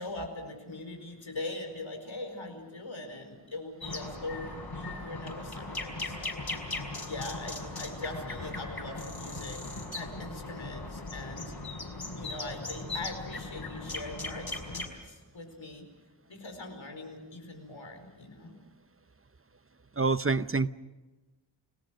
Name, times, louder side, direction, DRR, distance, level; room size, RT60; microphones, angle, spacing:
voice 1, 0.0-6.4 7.0-11.5 12.2-15.9 16.3-18.6, left 2 dB, 90° left, 5 dB, 4.8 m, -41 dB
sound 1, 3.8-14.9, left 2 dB, 55° left, 5.7 m, -38 dB
voice 2, 20.0-20.7, right 4 dB, 30° right, 14 dB, 0.8 m, -26 dB
29.5 x 19.5 x 6.5 m, 1.2 s
wide cardioid pair, 65°, 46 cm